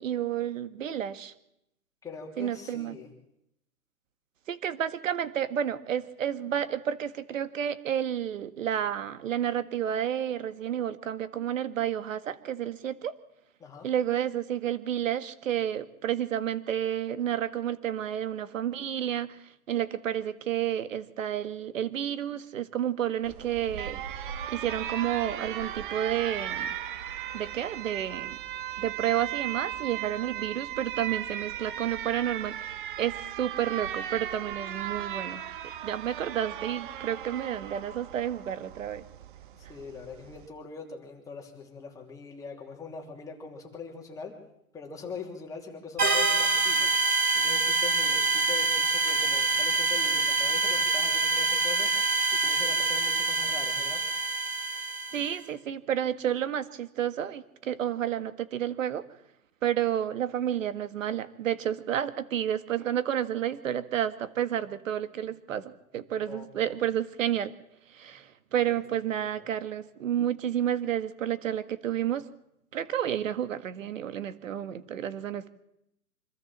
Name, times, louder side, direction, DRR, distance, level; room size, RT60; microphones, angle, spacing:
voice 1, 0.0-1.3 2.4-3.0 4.5-13.2 13.8-24.0 24.5-26.8 27.3-28.4 28.8-35.4 35.8-39.0 55.1-59.0 59.6-67.5 67.9-72.2 72.7-75.5, right 10 dB, 60° right, 12 dB, 1.9 m, -30 dB
voice 2, 2.0-3.1 13.6-13.9 39.7-44.4 44.7-54.0 66.3-66.5, left 5 dB, 5° left, 0 dB, 3.2 m, -42 dB
Alarm, 23.2-40.5, right 11 dB, 35° right, 1.1 m, -37 dB
sound 1, 46.0-55.4, right 3 dB, 90° right, 6.3 m, -26 dB
25.5 x 13.5 x 7.5 m, 0.80 s
hypercardioid pair, 155°, 44 cm